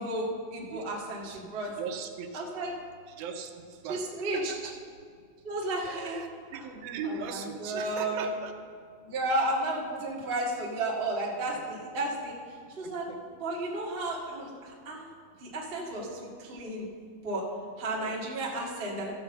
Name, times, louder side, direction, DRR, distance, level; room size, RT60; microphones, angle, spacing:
voice 1, 0.0-1.7 2.3-2.7 3.9-4.5 5.4-6.2 6.5-6.6 7.0-8.3 9.0-12.3 12.7-13.1 13.4-15.1 15.4-16.9 17.2-17.4 17.8-19.1, right 1 dB, 45° right, -3 dB, 0.7 m, -33 dB
voice 2, 1.8-2.4 3.1-4.0 4.3-4.7 5.8-8.5 12.8-13.2 15.9-16.2 17.9-18.2, right 6 dB, 80° right, 5 dB, 2.5 m, -39 dB
14.5 x 5.2 x 7.0 m, 2.2 s
omnidirectional pair, 4.2 m